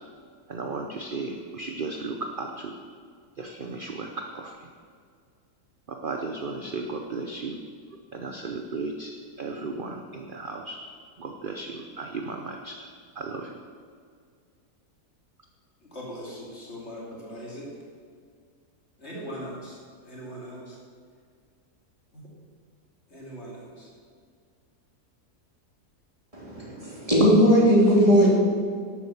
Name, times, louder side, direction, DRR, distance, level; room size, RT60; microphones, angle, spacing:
voice 1, 0.5-2.7 3.4-4.6 5.9-7.6 8.1-9.1 9.4-10.8 11.2-12.9 13.2-13.5, right 3 dB, 45° right, 3 dB, 0.8 m, -35 dB
voice 2, 15.8-17.7 19.0-19.8 20.0-20.8 22.1-22.3 23.1-23.9, equal, 40° left, -4 dB, 3.2 m, -40 dB
voice 3, 26.3-28.3, equal, 20° right, -5 dB, 3.1 m, -18 dB
12.0 x 8.3 x 7.1 m, 2.1 s
omnidirectional pair, 1.7 m